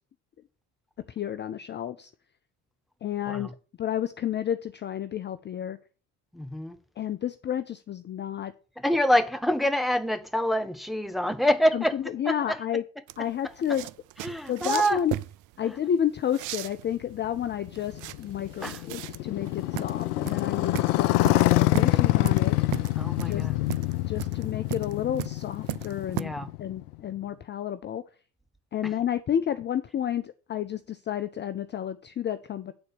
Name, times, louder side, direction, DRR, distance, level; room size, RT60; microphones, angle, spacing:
voice 1, 1.1-2.1 3.0-5.8 7.0-8.5 11.7-12.8 13.2-13.9 14.5-15.2 15.6-21.1 21.5-22.6 23.3-23.5 23.8-26.3 26.6-28.1 28.7-32.7, left 10 dB, 25° left, 0.5 m, -31 dB
voice 2, 6.3-6.8 8.8-12.0 12.3-12.6 14.2-15.0 18.6-18.8 23.0-23.5 26.1-26.5, equal, ahead, 0.8 m, -26 dB
sound 1, 13.1-26.2, right 16 dB, 45° right, 0.4 m, -37 dB
Motorcycle, 17.1-27.1, left 17 dB, 75° left, 0.7 m, -26 dB
9.2 x 4.0 x 6.9 m
hypercardioid pair, 65°, 46 cm